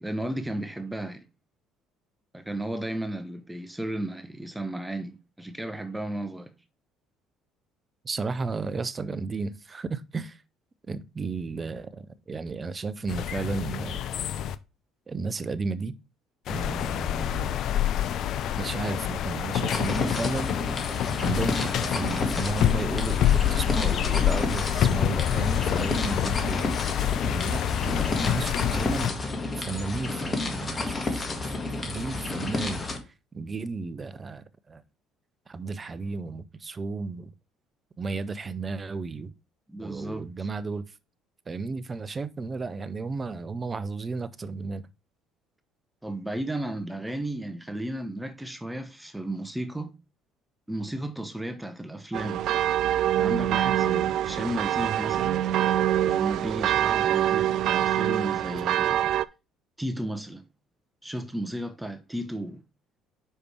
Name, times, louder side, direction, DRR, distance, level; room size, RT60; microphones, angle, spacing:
voice 1, 0.0-1.2 2.3-6.5 39.7-40.5 46.0-49.9 50.7-52.5 53.2-55.4 56.0-59.1 59.8-60.4 61.0-62.6, right 1 dB, 5° right, 0.9 m, -34 dB
voice 2, 8.0-10.4 10.9-14.0 15.1-16.0 16.5-17.6 18.6-20.5 21.2-26.7 27.2-29.1 29.6-30.9 31.3-31.4 31.8-32.8 33.3-34.8 35.5-37.3 38.0-39.3 39.8-40.8 41.5-44.9, right 4 dB, 30° right, 0.7 m, -33 dB
sound 1, 13.1-14.6 16.5-29.1, left 10 dB, 60° left, 0.5 m, -27 dB
sound 2, 19.7-33.0, left 2 dB, 35° left, 1.8 m, -31 dB
sound 3, 52.1-59.2, right 11 dB, 60° right, 0.3 m, -25 dB
5.6 x 5.1 x 4.6 m
hypercardioid pair, 60°, 0 cm